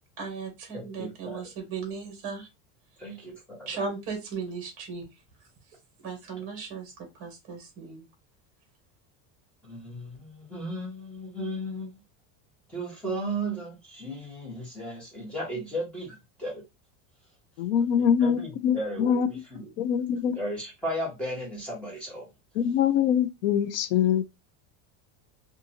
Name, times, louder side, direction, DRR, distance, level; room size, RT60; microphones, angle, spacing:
voice 1, 0.2-2.5 3.0-3.2 3.7-5.2 6.0-8.1, right 5 dB, 35° right, 1.2 m, -37 dB
voice 2, 0.7-1.4 3.0-3.7 9.6-12.0 12.7-16.6 18.0-19.2 19.5-19.6 20.4-22.3, right 1 dB, 5° left, 1.1 m, -35 dB
voice 3, 17.6-19.3 19.8-20.4 22.6-24.2, left 8 dB, 60° left, 0.5 m, -24 dB
2.7 x 2.4 x 2.7 m
cardioid pair, 175°, 43 cm